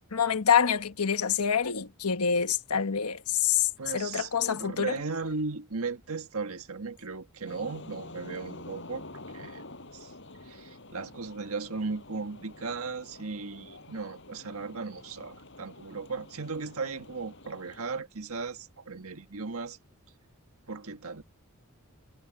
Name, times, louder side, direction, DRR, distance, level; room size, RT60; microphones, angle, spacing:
voice 1, 0.1-5.0, left 7 dB, 85° left, 1.3 m, -26 dB
voice 2, 3.8-9.7 9.9-10.1 10.5-19.8 20.7-21.2, right 4 dB, 70° right, 1.6 m, -36 dB
sound 1, 7.5-17.8, left 2 dB, 55° left, 7.9 m, -48 dB
head